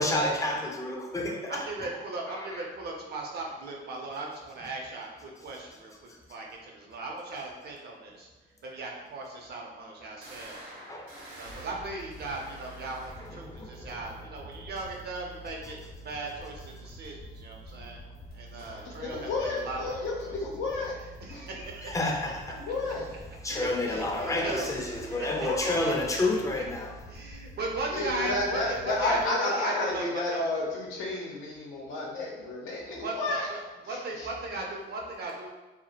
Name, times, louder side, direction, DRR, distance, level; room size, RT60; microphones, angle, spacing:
voice 1, 0.0-1.7 2.3-2.6 10.9-11.1 13.2-14.0 21.9-22.6 23.4-27.0, left 2 dB, 15° left, 1 dB, 0.4 m, -30 dB
voice 2, 1.5-8.3 8.6-10.7 11.3-18.1 18.3-20.3 21.2-22.0 23.5-25.6 26.1-26.2 27.1-30.4 32.9-33.6 33.9-35.5, right 2 dB, 55° right, 0 dB, 0.6 m, -37 dB
sound 1, 8.6-8.7 9.3-9.4 10.2-13.6 18.6-19.0 23.6-24.1, right 1 dB, 85° right, 0.8 m, -49 dB
sound 2, 11.4-29.3, right 1 dB, 50° left, 0.7 m, -47 dB
voice 3, 19.0-20.9 21.3-21.4 22.6-23.0 24.4-24.5 25.1-25.8 27.9-33.5 33.9-34.3, left 2 dB, 85° left, -3 dB, 0.7 m, -31 dB
2.1 x 2.1 x 2.8 m, 1.1 s
cardioid pair, 90°, 20 cm